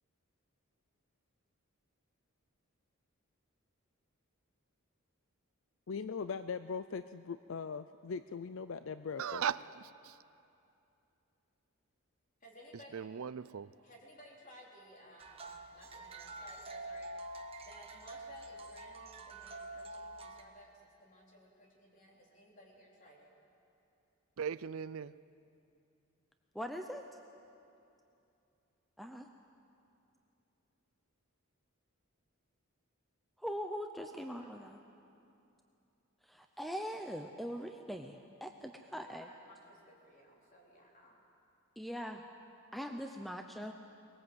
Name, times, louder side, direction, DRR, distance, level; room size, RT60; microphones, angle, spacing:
voice 1, 5.9-9.4, left 5 dB, 60° left, 12 dB, 0.5 m, -40 dB
voice 2, 9.2-10.2 12.9-13.8 24.4-25.2, right 7 dB, 70° right, 17 dB, 0.4 m, -38 dB
voice 3, 12.4-13.1 13.8-17.1 17.6-23.3 34.4-34.7 39.0-41.2, left 1 dB, 35° left, -2 dB, 4.1 m, -57 dB
sound 1, 15.2-20.4, right 2 dB, 25° right, 1.2 m, -47 dB
voice 4, 26.5-27.2 29.0-29.3 33.4-34.8 36.2-39.3 41.8-42.2 42.7-43.7, equal, ahead, 5 dB, 0.7 m, -42 dB
23.0 x 21.0 x 8.0 m, 2.7 s
head